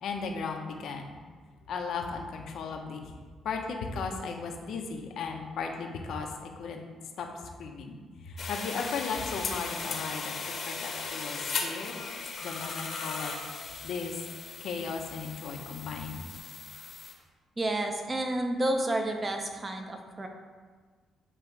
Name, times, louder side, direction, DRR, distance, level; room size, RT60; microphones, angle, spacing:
voice 1, 0.0-1.1 1.7-3.1 3.4-6.8 7.2-7.3 7.6-8.0 8.2-10.3 10.7-12.0 12.4-13.3 13.8-14.1 14.6-16.2, left 5 dB, 70° left, 3 dB, 0.7 m, -36 dB
sound 1, 8.4-17.1, left 4 dB, 55° left, 0.9 m, -37 dB
voice 2, 17.6-20.3, right 1 dB, 25° right, 4 dB, 0.8 m, -30 dB
7.2 x 3.0 x 4.6 m, 1.5 s
cardioid pair, 90°, 0 cm